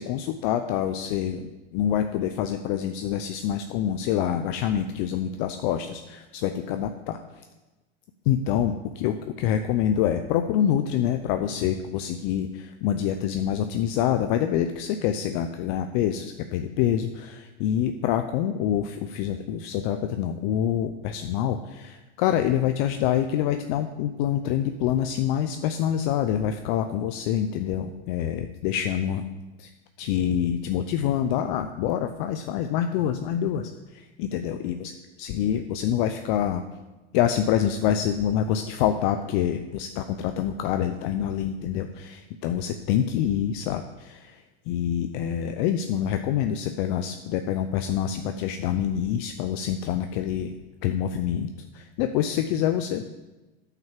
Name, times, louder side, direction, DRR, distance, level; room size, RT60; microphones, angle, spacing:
voice 1, 0.0-7.2 8.3-29.2 29.6-29.7 30.0-34.9 35.2-36.6 37.1-50.5 50.8-53.0, left 10 dB, 50° left, 7 dB, 0.6 m, -26 dB
9.1 x 5.8 x 7.4 m, 1.1 s
supercardioid pair, 140°, 33 cm